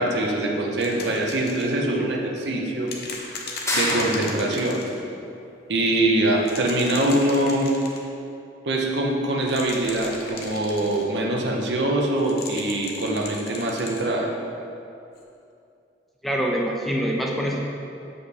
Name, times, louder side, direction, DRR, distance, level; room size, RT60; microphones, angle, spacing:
voice 1, 0.0-2.9 3.2-3.4 3.7-4.8 5.7-7.7 8.7-14.3, right 1 dB, 70° right, 0 dB, 0.8 m, -23 dB
sound 1, 0.8-1.8 2.9-5.0 6.4-8.0 9.4-11.1 12.2-14.1 15.2-15.3, left 4 dB, 60° left, 0.8 m, -37 dB
sound 2, 3.7-4.7, left 1 dB, 15° left, 0.9 m, -27 dB
voice 2, 16.2-17.6, equal, ahead, -1 dB, 0.5 m, -25 dB
6.6 x 5.2 x 4.2 m, 2.7 s
head